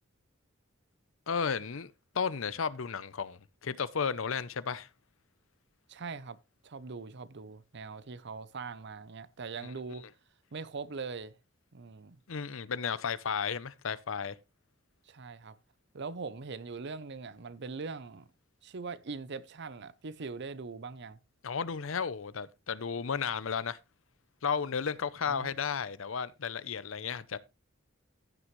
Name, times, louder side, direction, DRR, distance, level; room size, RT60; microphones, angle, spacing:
voice 1, 1.3-4.9 9.6-10.0 12.3-14.4 21.4-23.8 24.4-27.4, left 6 dB, 75° left, 0.6 m, -34 dB
voice 2, 5.9-6.4 6.6-10.0 10.5-11.4 11.7-12.2 15.1-15.5 15.9-18.3 18.6-21.2 25.3-25.5, right 4 dB, 60° right, 0.7 m, -41 dB
15.5 x 6.1 x 3.1 m
head